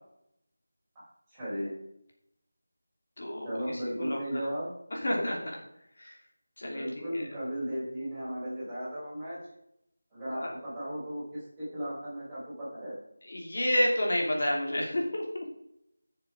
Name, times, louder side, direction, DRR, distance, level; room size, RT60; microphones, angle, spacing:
voice 1, 1.3-1.7 3.4-4.7 6.6-9.4 10.1-12.9, equal, 10° right, -12 dB, 4.8 m, -36 dB
voice 2, 3.2-4.2 4.9-5.6 6.0-6.2 6.6-7.3 10.3-10.5 13.2-15.4, left 1 dB, 55° left, -1 dB, 2.7 m, -30 dB
16.0 x 6.8 x 4.8 m, 0.78 s
figure-of-eight pair, 175°, 0 cm